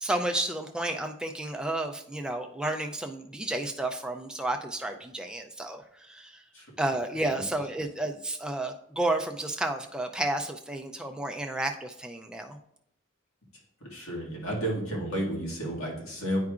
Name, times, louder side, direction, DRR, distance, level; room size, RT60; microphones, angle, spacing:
voice 1, 0.0-6.4 6.8-12.6, right 1 dB, 5° right, 4 dB, 0.3 m, -31 dB
voice 2, 13.9-16.4, right 1 dB, 80° left, -3 dB, 1.9 m, -32 dB
9.4 x 4.7 x 2.4 m, 0.75 s
head